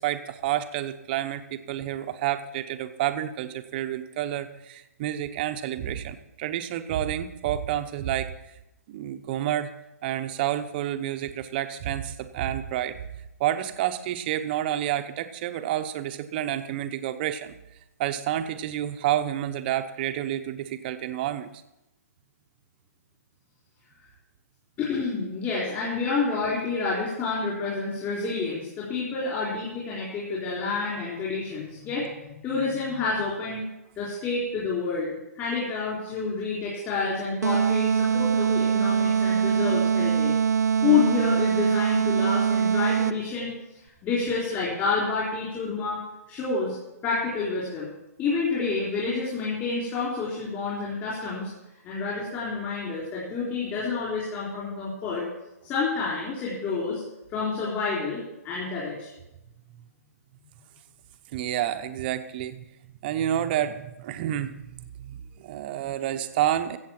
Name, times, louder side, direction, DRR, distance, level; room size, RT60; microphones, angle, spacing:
voice 1, 0.0-8.3 8.9-9.7 10.0-13.0 13.4-17.5 18.0-21.5 61.3-62.7 63.0-66.8, right 11 dB, 35° right, 9 dB, 0.9 m, -29 dB
voice 2, 24.8-33.6 34.0-40.4 40.8-43.5 44.0-46.0 46.3-46.8 47.0-47.9 48.2-51.5 51.8-55.2 55.6-57.0 57.3-59.1, left 4 dB, 25° left, -7 dB, 4.0 m, -28 dB
sound 1, 37.4-43.4, right 6 dB, 85° right, 0.6 m, -23 dB
14.5 x 8.1 x 5.9 m, 0.91 s
hypercardioid pair, 145°, 9 cm